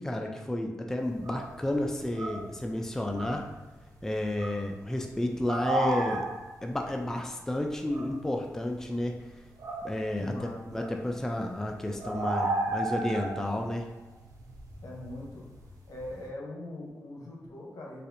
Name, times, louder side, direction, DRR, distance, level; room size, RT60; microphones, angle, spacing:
voice 1, 0.0-3.4 4.0-6.3 6.6-9.2 9.8-13.9, left 1 dB, 10° left, 2 dB, 0.3 m, -31 dB
sound 1, 1.0-10.4 10.7-16.2, right 2 dB, 85° right, 0.6 m, -36 dB
voice 2, 10.2-10.7 11.1-11.4 14.8-15.4 15.9-18.1, left 1 dB, 70° left, -2 dB, 0.9 m, -42 dB
4.0 x 2.4 x 2.6 m, 1.1 s
cardioid pair, 65°, 6 cm